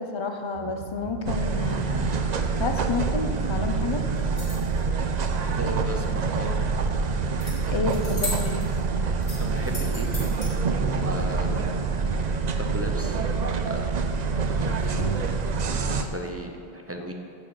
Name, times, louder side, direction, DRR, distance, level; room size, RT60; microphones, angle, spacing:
voice 1, 0.0-2.2 2.6-4.0 7.7-8.6 11.5-11.6 14.9-15.2, left 3 dB, 30° left, 5 dB, 0.7 m, -30 dB
sound 1, 0.5-12.4, right 6 dB, 70° right, 0.9 m, -41 dB
sound 2, 1.3-16.0, right 4 dB, 50° right, 0.6 m, -26 dB
sound 3, 4.2-4.8 7.4-7.5 7.9-8.8 9.2-10.5, left 1 dB, 60° left, 3.1 m, -35 dB
voice 2, 5.6-6.6 9.0-10.1 10.8-11.5 12.6-13.9 14.8-14.9 15.7-17.1, equal, 15° right, 2 dB, 0.7 m, -36 dB
12.0 x 4.2 x 7.7 m, 2.5 s
omnidirectional pair, 1.1 m